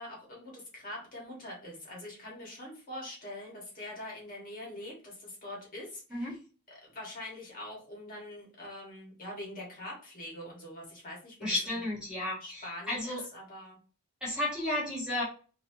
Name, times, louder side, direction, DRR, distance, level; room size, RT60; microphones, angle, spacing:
voice 1, 0.0-6.4 6.8-11.5 12.4-13.8, left 1 dB, 40° left, -2 dB, 1.3 m, -44 dB
voice 2, 11.4-13.2 14.2-15.2, left 1 dB, 5° right, -5 dB, 1.0 m, -33 dB
3.1 x 2.7 x 2.7 m, 0.37 s
head